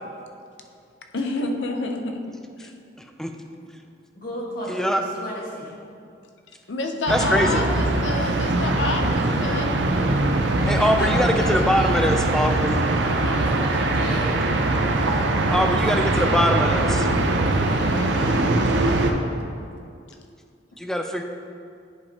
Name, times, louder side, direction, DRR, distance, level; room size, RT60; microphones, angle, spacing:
voice 1, 1.1-2.2 2.6-2.7 3.6-3.7 6.7-9.8 13.2-13.4 17.6-18.6, left 2 dB, 80° left, 4 dB, 0.7 m, -29 dB
voice 2, 4.1-5.7 10.4-12.1 13.3-14.4 15.5-16.5, equal, 55° left, -4 dB, 1.6 m, -35 dB
voice 3, 4.7-5.0 7.1-7.6 10.7-12.8 15.5-17.1 20.8-21.2, equal, 5° left, 4 dB, 0.4 m, -22 dB
sound 1, 7.1-19.1, right 2 dB, 75° right, 0.6 m, -22 dB
10.5 x 5.0 x 2.9 m, 2.4 s
head